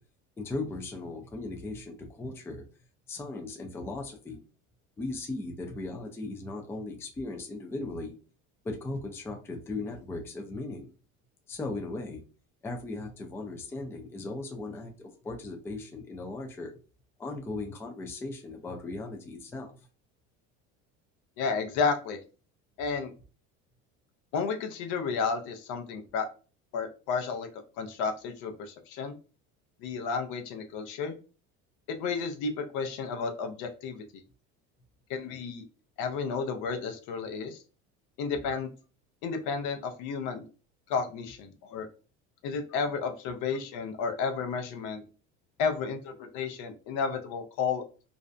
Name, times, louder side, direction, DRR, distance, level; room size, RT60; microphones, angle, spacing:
voice 1, 0.4-2.6 3.1-4.4 5.0-8.1 8.6-10.9 11.5-12.2 12.6-16.7 17.2-19.8, left 2 dB, 10° left, 3 dB, 0.3 m, -37 dB
voice 2, 21.4-22.2 22.8-23.1 24.3-26.3 26.7-27.5 27.8-29.2 29.8-31.2 32.0-34.0 35.1-35.6 36.0-37.6 38.2-38.7 39.2-40.4 40.9-41.9 42.4-45.0 45.6-47.8, left 5 dB, 70° left, 6 dB, 0.6 m, -32 dB
2.5 x 2.1 x 2.4 m, 0.36 s
cardioid pair, 125°, 32 cm